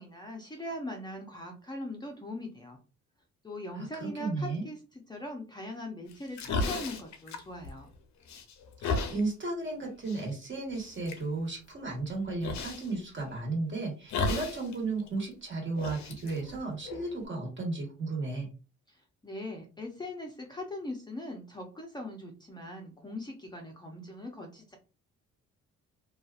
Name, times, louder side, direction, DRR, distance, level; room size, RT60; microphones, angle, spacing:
voice 1, 0.0-2.8 3.4-7.9 18.9-24.8, left 1 dB, 15° left, 0 dB, 0.5 m, -41 dB
voice 2, 3.7-4.6 8.8-18.5, right 3 dB, 40° right, 0 dB, 1.3 m, -34 dB
sound 1, 6.1-8.0 8.3-9.2 10.1-10.2 10.8-11.2 12.4-12.9 14.1-14.7 15.0-15.1 15.8-17.3, left 3 dB, 65° left, 0.6 m, -33 dB
2.7 x 2.3 x 2.3 m, 0.33 s
cardioid pair, 90°, 30 cm